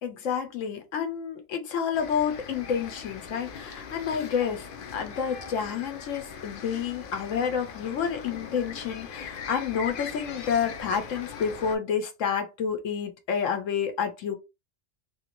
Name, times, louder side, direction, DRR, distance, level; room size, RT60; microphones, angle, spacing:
voice 1, 0.0-4.7 4.9-14.4, left 7 dB, 75° left, 1.0 m, -29 dB
sound 1, 1.9-11.8, left 6 dB, 60° left, 0.6 m, -41 dB
3.1 x 2.6 x 2.9 m
omnidirectional pair, 1.4 m